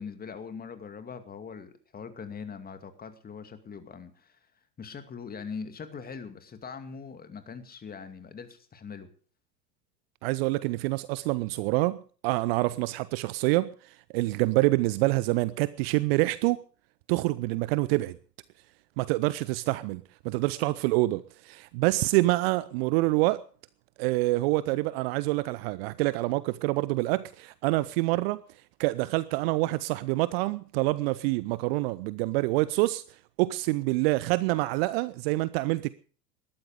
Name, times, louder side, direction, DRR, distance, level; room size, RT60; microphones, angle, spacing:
voice 1, 0.0-4.4 4.8-9.1, left 6 dB, 20° left, 2.3 m, -41 dB
voice 2, 10.2-16.6 17.1-18.2 19.0-23.4 24.0-28.4 28.8-35.9, right 20 dB, 40° right, 0.7 m, -26 dB
20.0 x 13.0 x 5.1 m
figure-of-eight pair, 90°, 49 cm